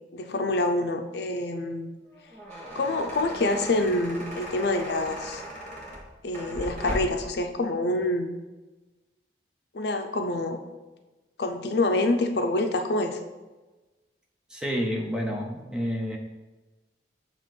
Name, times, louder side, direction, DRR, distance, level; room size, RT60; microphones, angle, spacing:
voice 1, 0.1-2.0 2.7-5.4 6.2-8.3 9.7-10.6 11.4-13.2, left 2 dB, 60° left, 5 dB, 0.5 m, -26 dB
sound 1, 2.1-7.3, equal, 40° right, 1.4 m, -38 dB
voice 2, 14.5-16.2, equal, 5° right, 0 dB, 0.7 m, -29 dB
7.0 x 3.0 x 5.9 m, 1.2 s
head